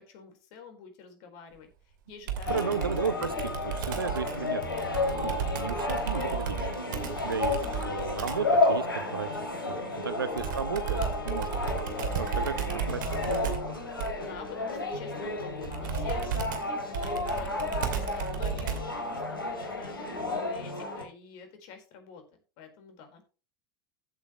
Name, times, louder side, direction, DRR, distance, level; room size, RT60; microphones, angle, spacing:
voice 1, 0.0-2.7 3.9-4.2 9.8-10.2 14.1-22.2 22.6-23.2, left 6 dB, 50° left, 5 dB, 4.4 m, -48 dB
Computer keyboard, 2.3-8.5 10.4-19.0, right 8 dB, 60° right, 2.5 m, -34 dB
sound 1, 2.5-21.0, left 3 dB, 80° left, 3.1 m, -32 dB
voice 2, 2.5-9.3 9.7-9.8 10.0-13.8, right 6 dB, 80° right, 14 dB, 1.0 m, -35 dB
15.0 x 8.3 x 3.1 m, 0.33 s
figure-of-eight pair, 80°, 11 cm